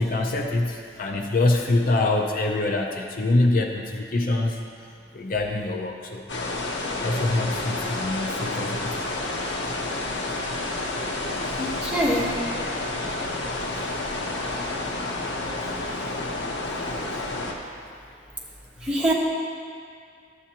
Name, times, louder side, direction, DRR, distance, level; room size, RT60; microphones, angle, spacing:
voice 1, 0.0-4.6 5.1-6.3 7.0-9.1, left 2 dB, 50° left, 2 dB, 0.5 m, -24 dB
sound 1, 6.3-17.5, left 2 dB, 80° left, 0.9 m, -30 dB
voice 2, 11.6-12.3 18.8-19.1, equal, 5° right, -5 dB, 1.2 m, -24 dB
11.5 x 8.2 x 2.9 m, 2.3 s
head